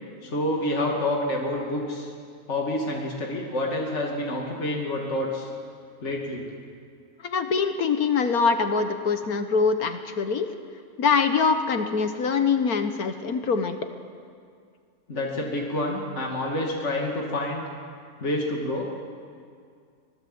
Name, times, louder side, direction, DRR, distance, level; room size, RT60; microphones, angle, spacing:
voice 1, 0.2-2.1 2.5-5.5 6.0-6.4 15.1-17.7 18.2-18.8, left 1 dB, 50° left, -1 dB, 2.7 m, -28 dB
voice 2, 7.2-10.5 11.0-13.8, left 5 dB, 75° left, 8 dB, 1.7 m, -24 dB
25.0 x 20.0 x 7.9 m, 2.2 s
omnidirectional pair, 1.6 m